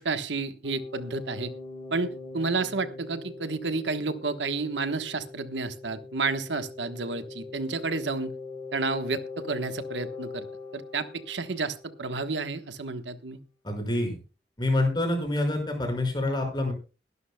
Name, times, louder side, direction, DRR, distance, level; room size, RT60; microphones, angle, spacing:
voice 1, 0.0-1.5 1.9-8.3 8.7-10.5 10.7-13.4, right 3 dB, 80° right, 9 dB, 1.2 m, -31 dB
sound 1, 0.6-12.2, left 3 dB, 5° left, 5.3 m, -42 dB
voice 2, 13.6-14.2 14.6-16.7, left 1 dB, 25° left, 3 dB, 5.5 m, -27 dB
22.0 x 12.0 x 2.2 m, 0.32 s
head